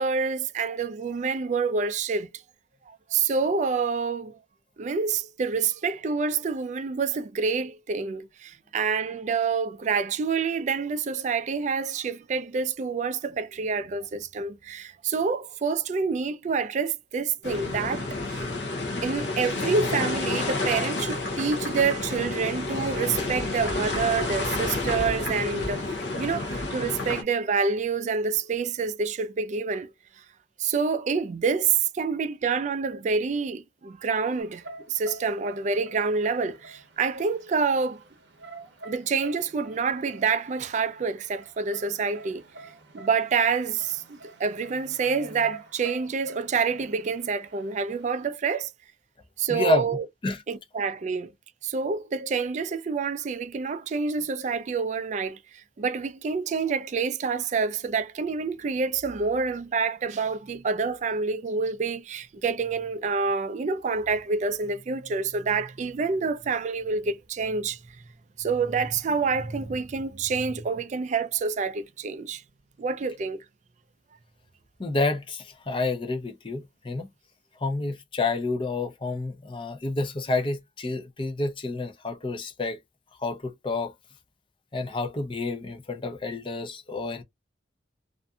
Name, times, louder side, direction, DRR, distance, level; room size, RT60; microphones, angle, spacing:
voice 1, 0.0-2.3 2.9-4.4 4.8-18.5 19.0-25.8 26.2-29.9 30.6-38.0 38.8-42.4 42.9-48.7 49.4-50.1 50.5-51.3 51.6-68.0 68.4-72.4 72.8-73.4, right 5 dB, 45° right, 0.3 m, -27 dB
sound 1, 17.4-27.2, left 2 dB, 85° left, 0.7 m, -30 dB
sound 2, 34.4-48.3, right 2 dB, 80° right, 0.7 m, -47 dB
voice 2, 49.5-49.8 50.2-50.4 74.8-77.1 77.6-82.8 83.2-83.9 84.7-87.2, left 3 dB, 30° left, 0.5 m, -29 dB
2.6 x 2.5 x 2.2 m
head